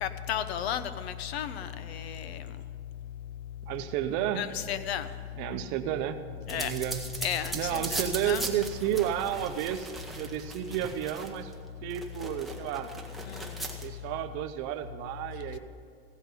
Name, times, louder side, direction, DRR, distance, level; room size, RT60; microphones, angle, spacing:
voice 1, 0.0-2.4 4.4-5.1 6.5-6.7 7.2-8.4 13.3-13.5, left 9 dB, 85° left, 12 dB, 0.8 m, -33 dB
voice 2, 3.7-4.5 5.3-6.2 6.5-7.0 7.5-11.5 11.8-12.9 13.8-15.6, right 11 dB, 40° right, 9 dB, 0.7 m, -32 dB
sound 1, 6.5-11.5 11.9-13.9, right 2 dB, ahead, 0.9 m, -39 dB
15.5 x 5.2 x 9.1 m, 2.1 s
supercardioid pair, 155°, 31 cm